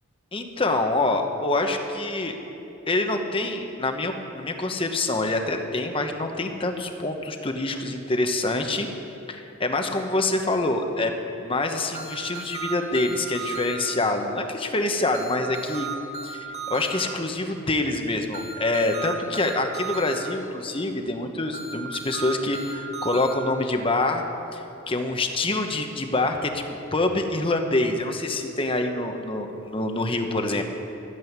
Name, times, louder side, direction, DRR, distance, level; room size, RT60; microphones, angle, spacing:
voice 1, 0.3-2.4 2.9-8.9 9.3-11.1 11.4-15.9 16.2-24.2 24.5-30.6, left 2 dB, 25° left, 5 dB, 1.0 m, -26 dB
sound 1, 11.9-13.7 15.1-16.9 18.3-20.1 21.5-23.3, right 5 dB, 35° right, 1.5 m, -35 dB
14.0 x 7.9 x 9.4 m, 2.9 s
head